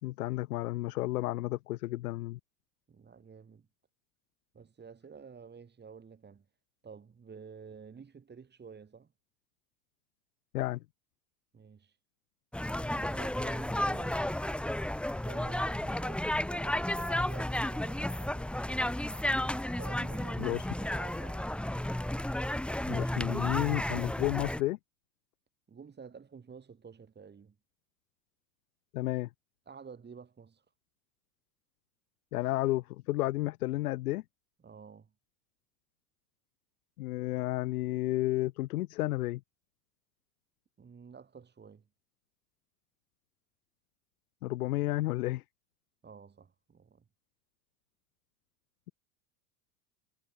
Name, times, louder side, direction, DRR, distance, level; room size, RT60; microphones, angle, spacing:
voice 1, 0.0-2.4 10.5-10.8 20.4-20.7 22.8-24.8 28.9-29.3 32.3-34.2 37.0-39.4 44.4-45.4, left 17 dB, 80° left, 3.0 m, -32 dB
voice 2, 2.9-3.7 4.5-6.5 6.8-9.1 11.5-12.0 12.6-14.4 15.2-18.7 19.7-21.6 25.7-27.6 29.7-30.7 34.6-35.1 40.8-41.8 46.0-47.0, right 6 dB, 25° right, 7.5 m, -51 dB
sound 1, 12.5-24.6, left 1 dB, ahead, 1.3 m, -32 dB
hypercardioid pair, 100°, 44 cm